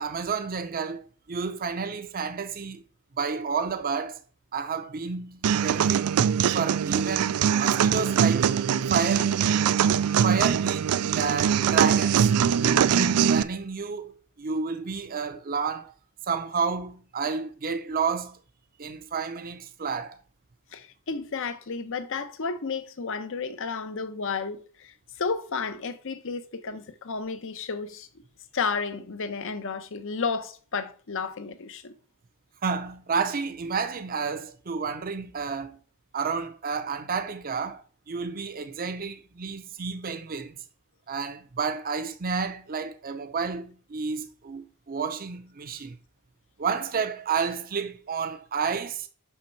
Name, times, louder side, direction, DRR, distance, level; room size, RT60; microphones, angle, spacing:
voice 1, 0.0-2.8 3.2-4.2 4.5-6.1 6.5-8.5 8.9-9.4 10.2-12.3 12.6-15.9 16.2-18.4 18.8-20.2 32.6-35.8 36.1-40.6 41.1-46.0 46.6-49.1, right 5 dB, 40° right, 0.6 m, -30 dB
sound 1, 5.4-13.4, right 8 dB, 85° right, 0.4 m, -22 dB
voice 2, 20.7-28.1 28.5-31.9, left 5 dB, 60° left, 0.8 m, -32 dB
6.1 x 5.7 x 4.5 m
head